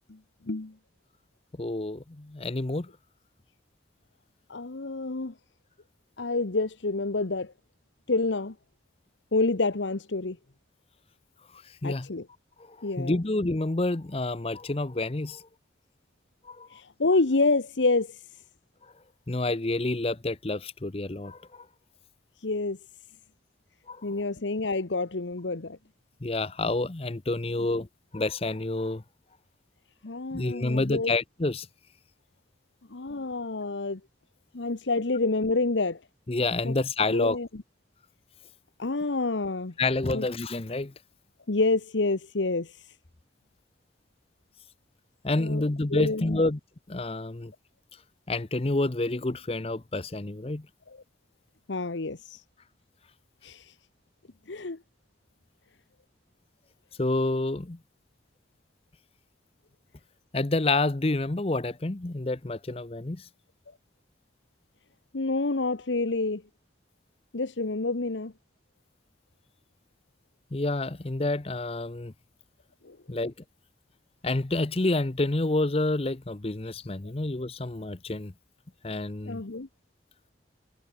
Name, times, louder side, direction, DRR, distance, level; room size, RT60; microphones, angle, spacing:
voice 1, 1.6-2.9 11.5-12.1 12.6-15.5 16.4-16.8 19.3-21.7 23.9-24.1 26.2-27.9 28.1-29.0 30.3-31.7 36.3-37.4 39.8-40.9 45.2-46.6 46.9-47.5 48.3-50.7 57.0-57.8 60.3-63.3 70.5-72.1 73.1-73.3 74.2-78.3 78.8-79.4, left 2 dB, 30° left, 0.7 m, -28 dB
voice 2, 4.5-5.3 6.2-7.5 8.1-8.5 9.3-10.4 11.8-12.3 12.8-13.2 16.7-18.2 22.4-22.8 24.0-25.8 30.0-31.1 32.9-34.0 34.5-36.0 36.6-36.7 37.1-37.6 38.8-39.7 40.1-40.2 41.5-42.9 45.3-45.6 45.9-46.4 50.9-51.0 51.7-52.4 53.4-53.7 54.5-54.8 65.1-66.4 67.3-68.3 72.8-73.0 79.2-79.7, left 3 dB, 90° left, 1.1 m, -28 dB
head